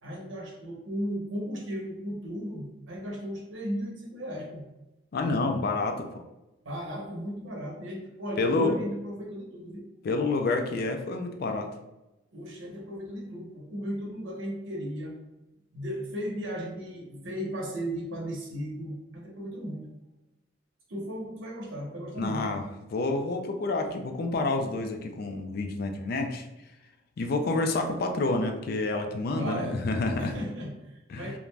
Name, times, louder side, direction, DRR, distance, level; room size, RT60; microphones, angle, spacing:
voice 1, 0.0-4.6 6.6-9.9 12.3-15.2 15.7-19.9 20.9-22.6 29.4-29.8 30.2-31.4, equal, 80° right, -1 dB, 0.7 m, -36 dB
voice 2, 5.1-6.2 8.4-8.8 10.0-11.7 22.2-22.6 22.9-26.5 27.2-30.3 31.1-31.3, left 3 dB, 50° left, 4 dB, 0.3 m, -28 dB
2.4 x 2.1 x 3.2 m, 0.98 s
head